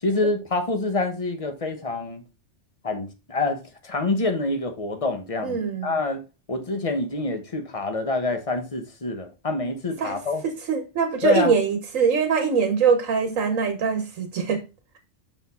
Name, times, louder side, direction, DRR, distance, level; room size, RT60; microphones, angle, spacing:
voice 1, 0.0-2.2 2.8-6.2 6.5-10.4 11.2-11.6, left 3 dB, 30° left, 0.9 m, -26 dB
voice 2, 5.4-5.9 10.0-10.2 10.7-14.6, right 6 dB, 85° right, 1.3 m, -23 dB
6.0 x 4.4 x 4.1 m
omnidirectional pair, 1.3 m